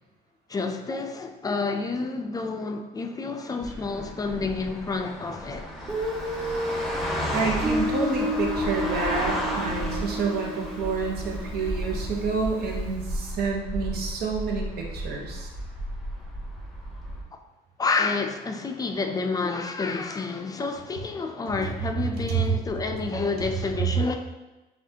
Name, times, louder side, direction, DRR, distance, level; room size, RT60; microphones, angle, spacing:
voice 1, 0.5-5.7 17.8-24.2, left 4 dB, 20° left, 0.4 m, -29 dB
sound 1, 3.6-17.2, equal, ahead, 0.8 m, -33 dB
Guitar, 5.9-12.5, equal, 30° right, 1.5 m, -31 dB
voice 2, 7.3-15.5 22.3-22.4, right 4 dB, 70° right, 0.9 m, -29 dB
5.8 x 2.4 x 2.8 m
cardioid pair, 110°, 17 cm